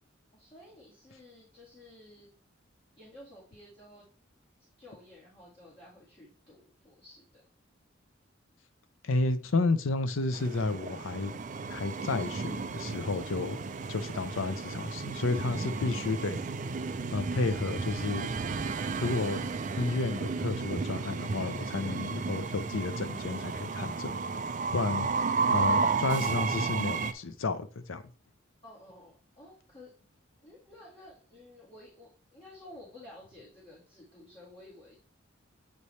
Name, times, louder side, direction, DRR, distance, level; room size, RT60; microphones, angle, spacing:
voice 1, 0.3-2.3 3.0-4.1 4.8-7.4 13.6-13.8 24.8-25.4 28.6-29.9 30.4-35.0, left 1 dB, 30° left, 1.9 m, -53 dB
voice 2, 9.0-11.4 11.7-13.6 13.9-16.4 17.1-18.3 19.0-19.5 19.8-24.1 24.7-25.1 25.5-28.0, left 3 dB, 85° left, 0.6 m, -31 dB
Train, 10.3-27.1, right 4 dB, 40° right, 0.4 m, -33 dB
8.2 x 3.3 x 4.2 m
head